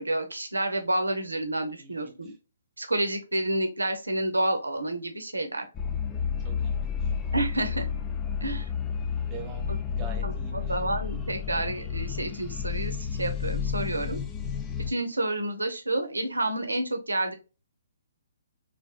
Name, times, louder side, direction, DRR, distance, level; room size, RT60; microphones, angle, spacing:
voice 1, 0.0-2.3 2.8-5.6 7.3-7.9 8.4-8.7 10.2-14.2 14.9-17.3, right 1 dB, 90° right, 6 dB, 0.7 m, -29 dB
voice 2, 1.8-2.3 6.4-7.1 9.2-10.8, right 5 dB, 25° right, 3 dB, 0.8 m, -45 dB
sound 1, 5.7-14.9, left 7 dB, 20° left, 0.3 m, -31 dB
3.4 x 2.6 x 2.2 m, 0.31 s
figure-of-eight pair, 135°, 0 cm